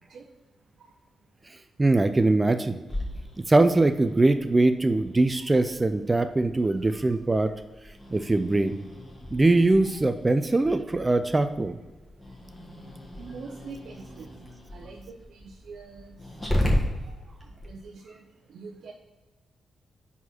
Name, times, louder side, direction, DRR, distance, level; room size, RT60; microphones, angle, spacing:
voice 1, 1.5-2.8 3.5-7.5 8.1-8.8 9.3-11.8, right 2 dB, 25° right, 8 dB, 0.4 m, -22 dB
Growling, 2.9-17.7, left 1 dB, 20° left, 1.6 m, -35 dB
voice 2, 13.2-14.3 14.7-16.2 16.5-16.7 17.1-17.2 17.6-18.2 18.5-18.9, right 4 dB, 75° right, 0 dB, 0.7 m, -44 dB
4.7 x 4.2 x 5.8 m, 1.2 s
cardioid pair, 65°, 0 cm